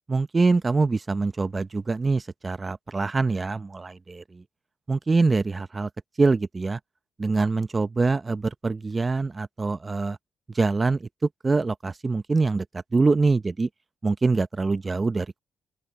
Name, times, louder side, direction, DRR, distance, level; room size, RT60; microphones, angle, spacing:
voice 1, 0.1-4.4 4.9-5.9 6.2-6.8 7.2-10.2 10.5-13.7 14.0-15.4, right 3 dB, 25° right, 0.6 m, -24 dB
open air
cardioid pair, 90°, 0 cm